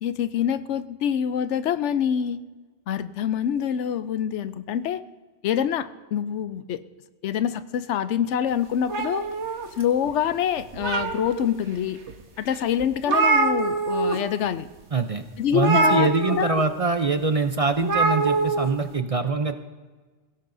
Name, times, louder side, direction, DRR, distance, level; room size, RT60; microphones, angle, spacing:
voice 1, 0.0-2.4 2.9-5.0 5.4-6.8 7.2-9.3 9.8-12.0 12.4-14.7 15.4-16.6, left 9 dB, 90° left, 13 dB, 1.0 m, -25 dB
sound 1, 8.9-10.1 10.6-11.5 12.1-12.2 12.5-12.6 12.8-14.2 14.4-14.7 15.6-16.6 17.8-18.7, right 3 dB, 80° right, 1.5 m, -24 dB
voice 2, 14.9-15.2 15.5-19.5, right 4 dB, 40° right, 8 dB, 0.6 m, -24 dB
22.5 x 16.5 x 2.6 m, 1.3 s
omnidirectional pair, 1.2 m